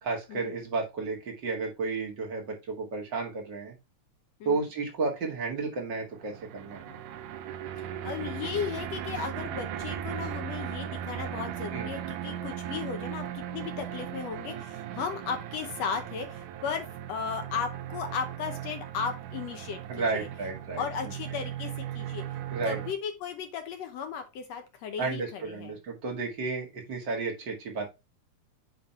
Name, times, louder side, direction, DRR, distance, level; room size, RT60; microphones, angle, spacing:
voice 1, 0.0-3.7 4.5-6.8 11.7-11.9 19.9-20.8 22.5-22.8 25.0-27.9, right 4 dB, 40° right, 0 dB, 2.1 m, -32 dB
sound 1, 6.1-22.9, right 10 dB, 80° right, 2.2 m, -37 dB
voice 2, 7.8-20.3 20.8-22.2 22.6-25.8, left 6 dB, 65° left, 6 dB, 1.8 m, -36 dB
9.1 x 3.2 x 4.2 m, 0.25 s
omnidirectional pair, 3.7 m